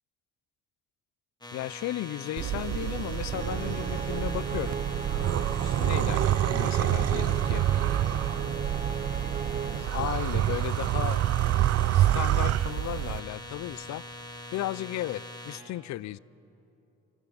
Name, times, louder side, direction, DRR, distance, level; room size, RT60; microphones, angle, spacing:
sound 1, 1.4-15.6, left 1 dB, 15° left, 2.3 m, -43 dB
voice 1, 1.5-4.8 5.2-7.7 8.4-8.6 9.9-11.2 11.9-14.0 14.5-16.2, left 15 dB, 65° left, 22 dB, 0.5 m, -35 dB
sound 2, 2.4-13.2, right 13 dB, 55° right, 0.4 m, -27 dB
sound 3, 3.3-9.8, right 6 dB, 25° right, 0.8 m, -34 dB
24.5 x 14.0 x 8.3 m, 2.8 s
cardioid pair, 90°, 30 cm